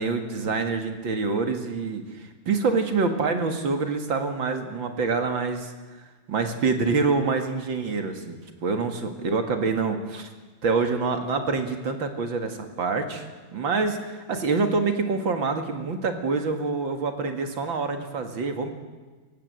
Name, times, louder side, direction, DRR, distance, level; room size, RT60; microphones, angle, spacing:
voice 1, 0.0-5.7 6.3-10.3 10.6-13.3 13.5-18.7, right 4 dB, 60° right, 6 dB, 2.6 m, -26 dB
28.0 x 15.5 x 7.8 m, 1.3 s
omnidirectional pair, 2.4 m